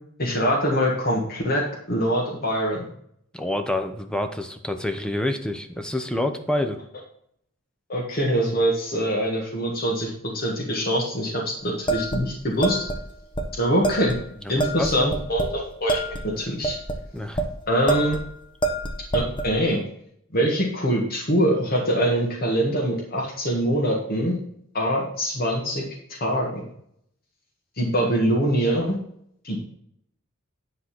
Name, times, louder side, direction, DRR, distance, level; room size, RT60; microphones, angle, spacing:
voice 1, 0.2-2.9 7.9-12.8 13.5-14.2 14.5-16.8 17.7-18.2 19.1-19.8 20.3-24.3 24.7-25.8 26.1-26.6 27.8-29.0 29.4-29.6, equal, 45° left, -2 dB, 1.8 m, -24 dB
voice 2, 3.3-6.8 14.5-15.1 17.1-17.4, left 1 dB, 5° left, 7 dB, 0.7 m, -27 dB
sound 1, 11.9-13.0 13.3-13.5 13.8-14.2 14.6-15.6 15.9-17.5 17.9-18.3 18.6-19.5, right 2 dB, 25° left, 1.1 m, -26 dB
10.0 x 4.1 x 6.1 m, 0.70 s
head